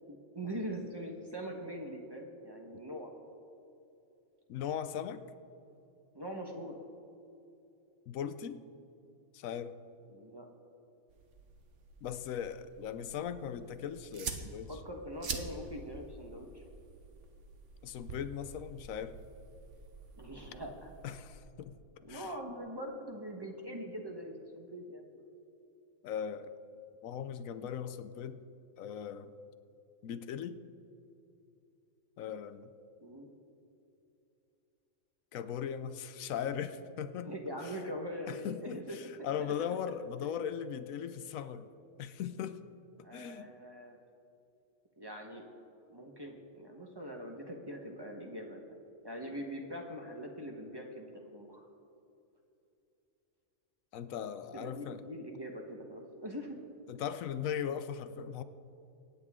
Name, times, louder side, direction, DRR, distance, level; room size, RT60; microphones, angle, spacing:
voice 1, 0.0-3.1 6.1-6.8 10.1-10.5 14.7-16.6 20.2-20.9 22.0-25.2 33.0-33.3 37.2-39.5 40.2-40.3 43.0-44.0 45.0-45.5 45.9-48.8 49.0-51.6 54.5-56.6, equal, 20° right, 1 dB, 1.2 m, -43 dB
voice 2, 4.5-5.2 8.1-8.7 9.3-9.8 12.0-14.7 17.8-19.2 21.0-22.3 26.0-26.5 27.0-28.4 28.8-29.3 30.0-30.6 32.2-32.7 35.3-37.3 37.6-37.7 38.3-41.7 42.0-42.6 43.0-43.5 53.9-55.0 56.9-58.4, left 8 dB, 80° left, 12 dB, 1.0 m, -39 dB
sound 1, 11.1-21.4, right 5 dB, 65° right, 1.3 m, -47 dB
24.0 x 9.4 x 3.7 m, 2.8 s
omnidirectional pair, 1.4 m